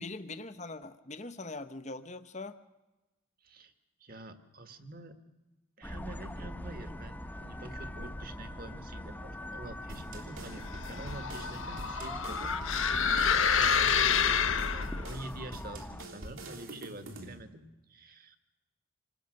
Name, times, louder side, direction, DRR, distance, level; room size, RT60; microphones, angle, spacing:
voice 1, 0.0-2.6, left 3 dB, 35° left, 11 dB, 0.8 m, -42 dB
voice 2, 3.4-3.7 4.0-5.1 5.8-12.6 13.3-18.4, right 2 dB, 45° right, 9 dB, 1.7 m, -47 dB
sound 1, 5.8-16.0, left 1 dB, 10° left, 1.0 m, -42 dB
sound 2, 9.9-17.4, right 1 dB, 75° right, 3.4 m, -46 dB
sound 3, 10.7-15.1, left 6 dB, 70° left, 1.0 m, -28 dB
27.0 x 19.5 x 6.5 m, 1.1 s
head